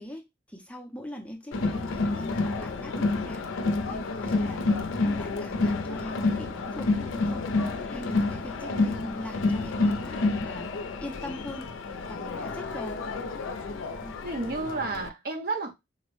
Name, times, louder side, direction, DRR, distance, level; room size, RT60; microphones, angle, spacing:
voice 1, 0.0-3.5 3.9-7.5 7.9-10.7 11.0-11.7 12.1-13.0 14.0-14.2, equal, 5° left, 0.5 m, -41 dB
Crowd, 1.5-15.1, left 3 dB, 85° left, 0.4 m, -29 dB
voice 2, 14.2-15.7, right 3 dB, 50° right, 0.7 m, -32 dB
3.8 x 2.0 x 3.1 m
head